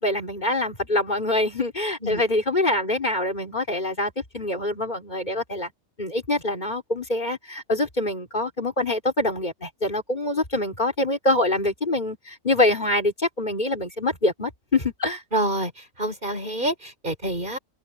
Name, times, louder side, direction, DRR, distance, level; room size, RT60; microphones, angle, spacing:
voice 1, 0.0-5.7 6.0-15.2, left 2 dB, 35° left, 4.3 m, -25 dB
voice 2, 15.3-17.6, right 1 dB, 40° right, 4.8 m, -27 dB
omnidirectional pair, 1.4 m